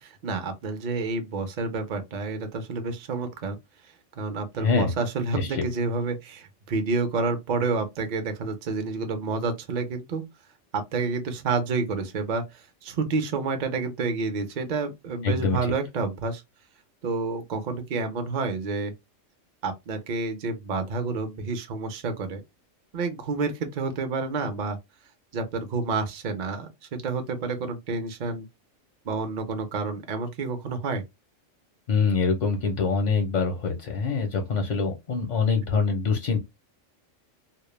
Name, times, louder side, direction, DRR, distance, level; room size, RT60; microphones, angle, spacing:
voice 1, 0.0-3.6 4.2-10.2 10.7-16.4 17.0-18.9 19.6-22.4 22.9-24.8 25.3-28.5 29.0-31.0, right 4 dB, 55° right, 0.5 m, -29 dB
voice 2, 4.6-4.9 5.3-5.7 15.2-15.6 31.9-36.4, left 4 dB, 55° left, 0.5 m, -24 dB
2.2 x 2.0 x 3.0 m
omnidirectional pair, 1.3 m